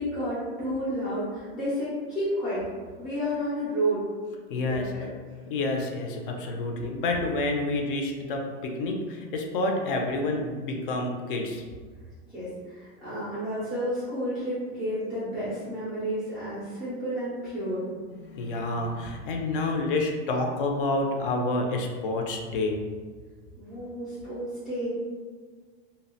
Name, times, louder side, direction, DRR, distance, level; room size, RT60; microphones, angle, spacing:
voice 1, 0.0-2.6 3.0-4.1 4.6-5.4 12.2-17.9 23.6-24.9, equal, ahead, -12 dB, 0.3 m, -31 dB
voice 2, 4.5-4.9 5.5-11.6 18.2-22.8, left 2 dB, 60° left, 2 dB, 0.4 m, -28 dB
2.7 x 2.0 x 2.7 m, 1.5 s
supercardioid pair, 180°, 30 cm